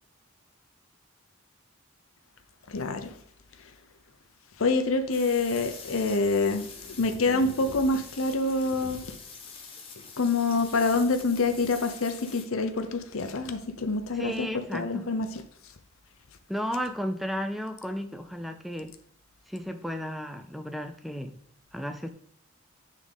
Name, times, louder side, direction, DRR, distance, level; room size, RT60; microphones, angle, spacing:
voice 1, 2.7-3.1 4.6-9.0 10.2-14.5 14.7-15.3, left 3 dB, 80° left, 8 dB, 0.7 m, -26 dB
sound 1, 5.1-12.4, left 5 dB, 25° left, 1.0 m, -45 dB
voice 2, 14.1-15.1 16.5-18.9 19.5-21.4 21.7-22.1, equal, ahead, 6 dB, 0.4 m, -33 dB
8.3 x 3.7 x 3.6 m, 0.69 s
head